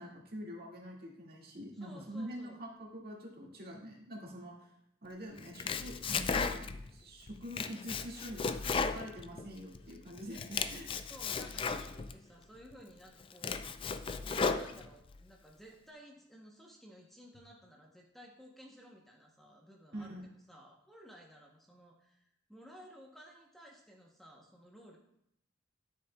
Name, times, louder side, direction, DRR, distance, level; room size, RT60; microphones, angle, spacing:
voice 1, 0.0-4.7 5.0-11.0 19.9-20.2, equal, 55° right, -2 dB, 1.9 m, -45 dB
voice 2, 1.7-2.6 5.2-5.6 11.1-13.9 14.2-25.0, equal, ahead, -1 dB, 0.8 m, -55 dB
Domestic sounds home sounds, 5.4-6.9 7.3-9.8 10.2-12.2 12.7-12.8 13.2-15.1, left 5 dB, 30° left, 0.3 m, -35 dB
12.0 x 6.7 x 2.2 m, 0.77 s
head